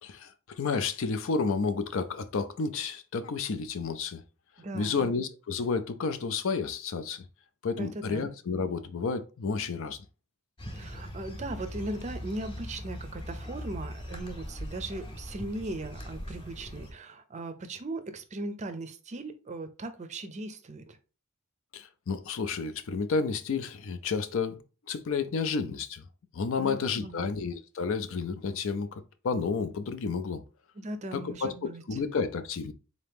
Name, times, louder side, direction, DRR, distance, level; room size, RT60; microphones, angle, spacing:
voice 1, 0.0-4.2 4.7-7.3 7.6-10.0 21.7-24.6 24.9-26.0 26.3-30.4 31.1-31.5 31.9-32.7, left 4 dB, 65° left, 0.4 m, -31 dB
voice 2, 4.6-5.1 7.7-8.3 10.7-21.0 26.5-27.3 30.8-32.0, right 2 dB, 30° right, 0.5 m, -38 dB
sound 1, 10.6-16.9, equal, 25° left, 0.8 m, -40 dB
3.9 x 2.8 x 3.4 m
head